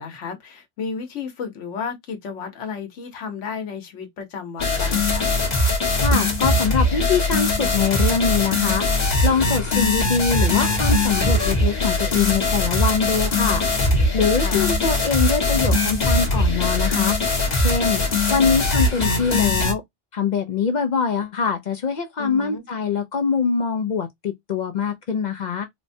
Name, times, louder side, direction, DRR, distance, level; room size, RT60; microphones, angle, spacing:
voice 1, 0.0-5.3 14.3-14.7 22.2-22.6, left 6 dB, 90° left, 1.2 m, -33 dB
sound 1, 4.6-19.7, left 2 dB, 40° left, 1.1 m, -21 dB
voice 2, 5.9-8.9 9.2-13.6 14.1-17.2 17.5-18.0 18.3-19.8 20.1-25.7, left 5 dB, 60° left, 0.5 m, -23 dB
4.0 x 2.1 x 2.6 m
omnidirectional pair, 1.2 m